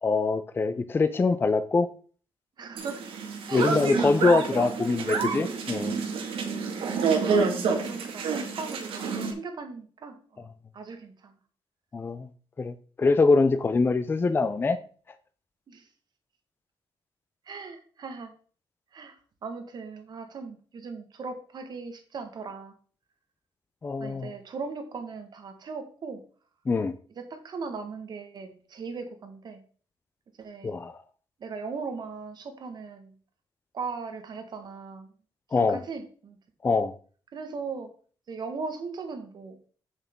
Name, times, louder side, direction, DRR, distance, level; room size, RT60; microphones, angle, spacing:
voice 1, 0.0-1.9 3.5-6.0 11.9-12.3 12.6-14.8 23.8-24.3 26.7-26.9 30.6-31.0 35.5-35.8 36.6-36.9, left 3 dB, 25° left, 0.5 m, -24 dB
voice 2, 2.6-3.0 3.5-4.0 4.5-4.8 7.2-10.5 10.7-11.3 15.7-15.9 17.4-18.3 18.9-22.8 24.0-26.2 27.2-29.6 30.4-30.8 31.4-33.1 33.7-35.1 35.5-36.4 37.3-37.9 38.3-39.7, right 4 dB, 50° right, 1.4 m, -38 dB
sound 1, 2.8-9.3, right 5 dB, 75° right, 1.8 m, -28 dB
8.1 x 7.0 x 3.6 m
cardioid pair, 140°, 10 cm